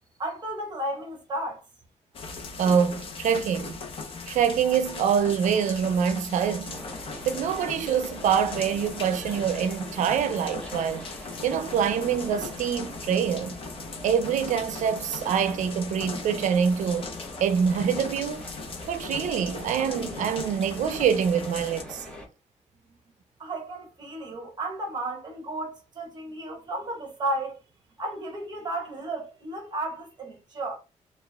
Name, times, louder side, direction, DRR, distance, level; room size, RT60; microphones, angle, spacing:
voice 1, 0.2-1.6 23.4-27.6 28.0-30.8, right 1 dB, 35° right, 1.3 m, -33 dB
sound 1, 2.1-21.8, left 4 dB, 45° left, 0.7 m, -39 dB
voice 2, 2.6-3.8 4.3-6.8 7.3-11.1 11.4-13.6 14.0-17.1 17.4-18.5 18.9-22.1, right 7 dB, 75° right, 0.5 m, -25 dB
sound 2, 6.7-22.3, left 1 dB, 10° left, 1.0 m, -42 dB
4.3 x 2.4 x 3.3 m
wide cardioid pair, 170°, 13 cm